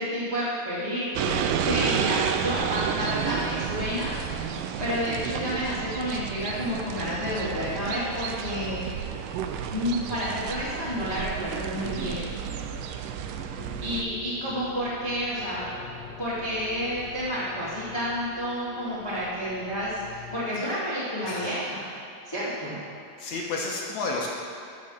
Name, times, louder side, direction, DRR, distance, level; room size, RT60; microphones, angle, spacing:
voice 1, 0.0-8.8 9.7-12.3 13.8-15.8 16.2-21.8 22.2-22.8, equal, 10° left, -11 dB, 1.2 m, -30 dB
sound 1, 1.2-14.0, right 8 dB, 80° right, 1.9 m, -31 dB
sound 2, 13.6-20.5, left 6 dB, 85° left, 1.5 m, -45 dB
voice 2, 23.2-24.3, left 3 dB, 70° left, -2 dB, 1.9 m, -31 dB
12.5 x 4.2 x 6.4 m, 2.7 s
omnidirectional pair, 4.1 m